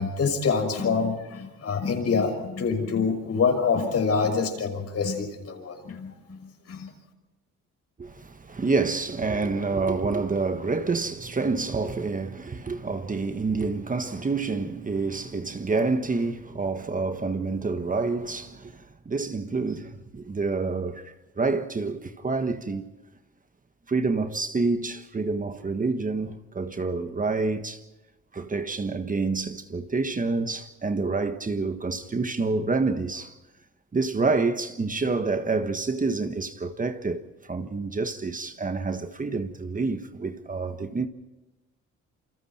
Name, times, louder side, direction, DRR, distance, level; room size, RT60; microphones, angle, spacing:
voice 1, 0.0-6.4 6.7-6.9, left 5 dB, 55° left, 5.8 m, -26 dB
voice 2, 8.0-22.9 23.9-27.8 28.3-33.3 33.9-37.2 37.5-41.1, right 3 dB, 25° right, 1.5 m, -28 dB
28.0 x 25.0 x 4.5 m
cardioid pair, 90°, 30 cm